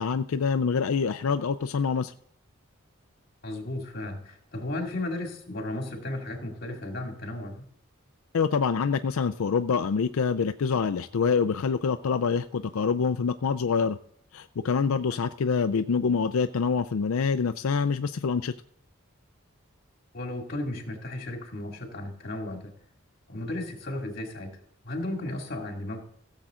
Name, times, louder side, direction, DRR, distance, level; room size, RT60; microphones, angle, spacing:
voice 1, 0.0-2.1 8.3-14.0 14.3-18.5, left 5 dB, 85° left, 9 dB, 0.5 m, -26 dB
voice 2, 3.4-7.6 20.1-22.7 23.3-24.6 24.8-26.0, left 1 dB, 45° left, 3 dB, 2.4 m, -34 dB
16.5 x 7.3 x 3.7 m, 0.69 s
head